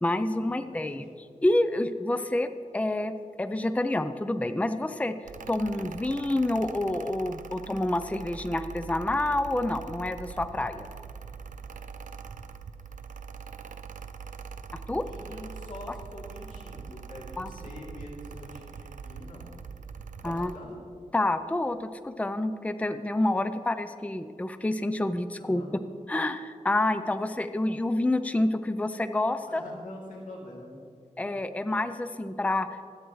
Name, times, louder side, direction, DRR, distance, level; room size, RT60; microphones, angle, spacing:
voice 1, 0.0-1.1 1.4-5.2 5.5-10.9 14.7-15.0 17.4-17.5 20.2-20.5 21.1-25.6 26.1-29.6 31.2-32.8, left 1 dB, 10° left, 10 dB, 0.5 m, -28 dB
voice 2, 0.6-1.0 14.8-19.5 20.2-20.8 25.4-25.7 29.5-30.7 31.2-31.5, left 1 dB, 85° left, -4 dB, 2.9 m, -45 dB
Mechanical fan, 5.3-20.6, right 6 dB, 90° right, 0.5 m, -43 dB
24.5 x 8.8 x 3.2 m, 2.3 s
wide cardioid pair, 75°, 13 cm